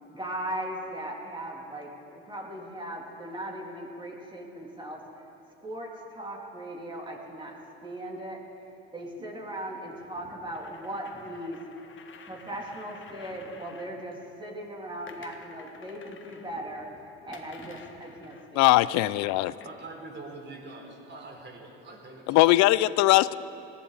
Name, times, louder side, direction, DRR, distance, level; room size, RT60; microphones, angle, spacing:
voice 1, 0.1-5.0 5.6-7.6 7.8-8.4 8.9-11.6 12.3-18.9, right 1 dB, 15° right, -1 dB, 3.0 m, -38 dB
sound 1, 10.5-13.9 15.1-16.5 17.3-18.5 19.6-19.8 20.7-20.8, left 6 dB, 40° left, 1.4 m, -51 dB
voice 2, 18.6-19.5 22.3-23.3, left 17 dB, 65° left, 18 dB, 0.5 m, -20 dB
voice 3, 19.6-22.5, right 2 dB, 35° right, 1 dB, 3.8 m, -44 dB
19.0 x 15.0 x 4.0 m, 3.0 s
supercardioid pair, 75°, 31 cm